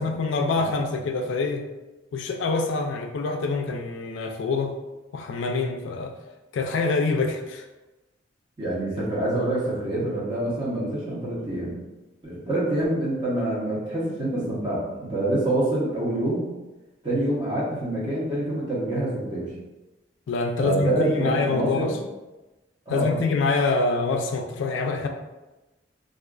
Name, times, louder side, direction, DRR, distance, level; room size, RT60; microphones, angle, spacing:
voice 1, 0.0-1.6 2.1-4.8 5.1-6.1 6.5-7.7 20.3-22.0 22.9-25.1, left 3 dB, 80° left, 4 dB, 0.3 m, -25 dB
voice 2, 0.5-0.9 8.6-11.7 12.2-16.5 17.0-19.5 20.6-21.9 22.9-23.3, right 1 dB, 25° right, -7 dB, 0.7 m, -26 dB
2.4 x 2.3 x 2.2 m, 1.1 s
head